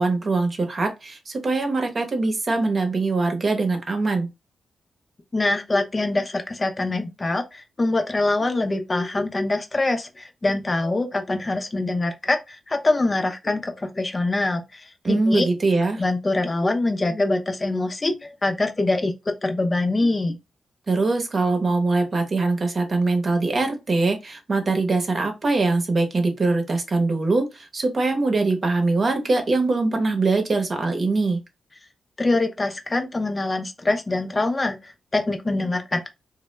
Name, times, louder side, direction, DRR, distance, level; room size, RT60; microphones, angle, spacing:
voice 1, 0.0-4.3 15.0-16.0 20.9-31.4, right 3 dB, 50° right, 0.8 m, -22 dB
voice 2, 5.3-15.5 16.0-20.4 32.2-36.1, left 2 dB, 35° left, 0.5 m, -24 dB
2.2 x 2.0 x 3.1 m
cardioid pair, 55°, 0 cm